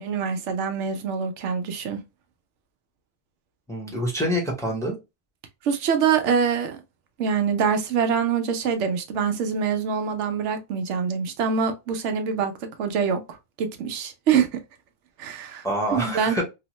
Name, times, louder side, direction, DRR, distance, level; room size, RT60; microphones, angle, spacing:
voice 1, 0.0-2.0 5.6-6.8 7.2-12.5 12.8-13.2 13.6-14.6 15.2-15.6 15.9-16.4, right 6 dB, 85° right, 0.9 m, -24 dB
voice 2, 3.7-5.0 15.6-16.4, equal, 5° left, 0.6 m, -26 dB
2.9 x 2.1 x 2.9 m
omnidirectional pair, 1.2 m